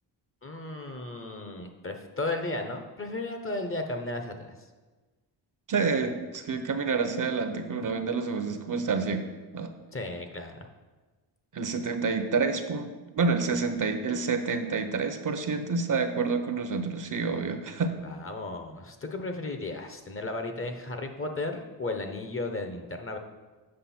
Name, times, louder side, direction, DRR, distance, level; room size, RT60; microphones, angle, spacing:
voice 1, 0.4-4.7 9.9-10.7 18.0-23.2, left 2 dB, 30° left, 5 dB, 0.9 m, -34 dB
voice 2, 5.7-9.2 9.5-9.7 11.5-17.9, right 4 dB, 45° right, 8 dB, 0.8 m, -28 dB
7.6 x 5.2 x 4.3 m, 1.3 s
cardioid pair, 65°, 43 cm